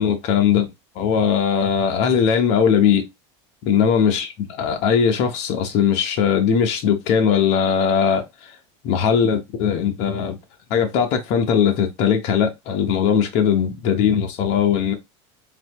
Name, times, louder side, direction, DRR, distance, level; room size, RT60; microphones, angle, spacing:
voice 1, 0.0-3.0 3.6-4.3 4.6-8.5 8.8-10.4 10.7-14.9, left 7 dB, 50° left, 1.0 m, -19 dB
4.1 x 2.8 x 3.0 m
supercardioid pair, 160°, 15 cm